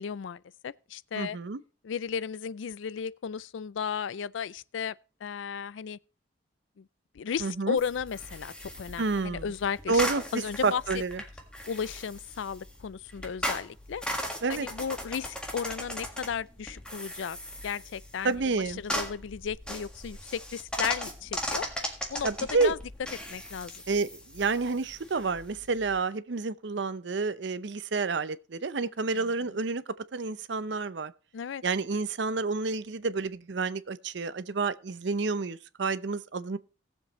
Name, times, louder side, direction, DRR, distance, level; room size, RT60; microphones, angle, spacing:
voice 1, 0.0-1.4 1.8-5.0 5.2-6.0 6.8-6.9 7.1-10.0 10.3-10.8 11.7-14.0 14.5-17.4 17.6-18.3 18.8-21.7 22.1-22.3 22.6-22.8 23.3-23.8 29.1-29.3 31.3-31.6, left 7 dB, 80° left, 0.4 m, -34 dB
voice 2, 1.1-1.6 7.4-7.8 9.0-9.5 9.9-10.2 10.6-11.2 14.4-14.7 18.2-18.8 22.2-22.7 23.9-29.8 30.1-31.1 31.6-36.6, right 4 dB, 65° right, 0.6 m, -29 dB
sound 1, 7.8-26.0, equal, 5° left, 1.7 m, -38 dB
18.5 x 7.4 x 3.1 m
head